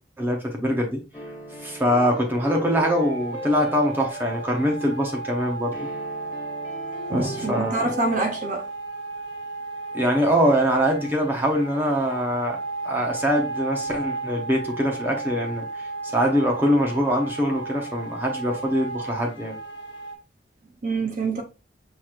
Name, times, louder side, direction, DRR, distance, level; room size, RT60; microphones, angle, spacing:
voice 1, 0.2-1.0 1.6-5.7 7.1-7.9 9.9-12.6 12.8-19.6, equal, 10° right, 0.8 m, -23 dB
sound 1, 1.1-4.9 5.7-8.3, left 1 dB, 15° left, 1.8 m, -38 dB
sound 2, 2.7-20.1, right 3 dB, 75° left, 0.8 m, -34 dB
voice 2, 7.1-8.6 20.8-21.4, right 3 dB, 45° right, 0.6 m, -26 dB
5.8 x 3.1 x 2.5 m
head